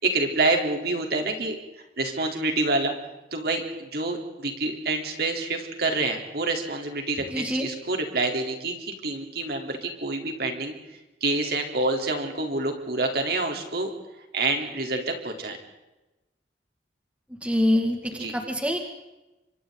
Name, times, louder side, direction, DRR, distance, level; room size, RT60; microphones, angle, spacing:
voice 1, 0.0-1.6 2.0-2.9 3.3-10.8 11.2-13.9 14.3-15.6 18.1-18.3, right 2 dB, 60° right, 3 dB, 3.8 m, -27 dB
voice 2, 7.3-7.7 17.4-18.8, left 1 dB, 5° right, 3 dB, 2.2 m, -25 dB
30.0 x 25.5 x 4.0 m, 1.0 s
head